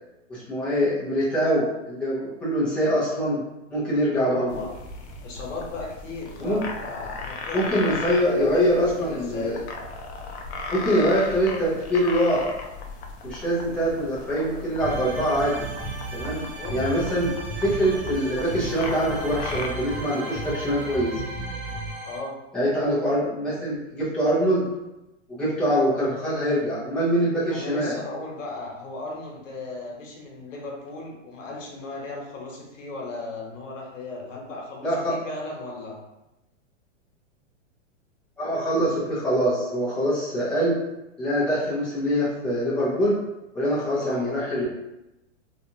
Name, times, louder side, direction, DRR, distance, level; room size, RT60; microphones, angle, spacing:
voice 1, 0.3-3.4 3.7-4.5 6.4-6.6 7.5-9.6 10.7-12.5 13.2-15.6 16.1-21.1 22.5-24.7 25.3-28.0 34.8-35.2 38.4-40.8 41.2-43.2 43.5-44.7, equal, 5° left, -10 dB, 0.4 m, -24 dB
voice 2, 4.2-4.7 5.2-8.6 9.0-9.6 16.5-16.8 22.0-22.4 25.9-26.2 27.5-36.0 44.0-44.2, left 3 dB, 85° left, -1 dB, 1.0 m, -36 dB
sound 1, 4.5-19.7, left 3 dB, 60° left, 0.5 m, -37 dB
sound 2, 14.8-22.2, right 2 dB, 40° right, 0.7 m, -34 dB
2.8 x 2.3 x 2.7 m, 0.95 s
hypercardioid pair, 150°, 37 cm